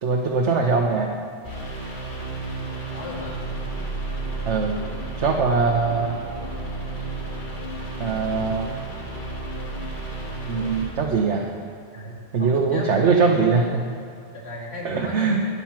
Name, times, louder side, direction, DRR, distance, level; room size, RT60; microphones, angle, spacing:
voice 1, 0.0-1.1 4.5-4.7 5.2-6.2 8.0-8.7 10.5-11.5 12.3-13.8 14.8-15.4, right 4 dB, 85° right, 0 dB, 1.2 m, -21 dB
sound 1, 1.4-10.8, right 2 dB, 85° left, 3.3 m, -32 dB
voice 2, 2.9-3.4 11.9-13.6 14.3-15.3, left 2 dB, 70° left, -3 dB, 2.6 m, -35 dB
12.0 x 9.7 x 5.8 m, 2.4 s
omnidirectional pair, 1.1 m